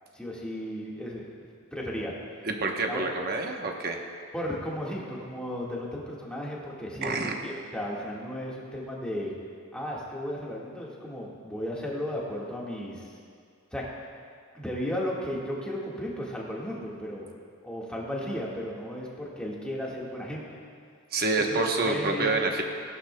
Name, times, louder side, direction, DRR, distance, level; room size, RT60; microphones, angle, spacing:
voice 1, 0.1-1.3 1.7-2.1 2.9-3.0 4.3-9.3 9.7-13.1 13.7-13.8 14.5-17.3 17.6-20.5 21.5-21.6 21.8-22.4, equal, 5° left, -5 dB, 1.7 m, -34 dB
voice 2, 2.4-4.0 7.0-7.3 21.1-22.6, right 3 dB, 45° right, 3 dB, 1.0 m, -27 dB
18.0 x 11.5 x 2.3 m, 2.2 s
head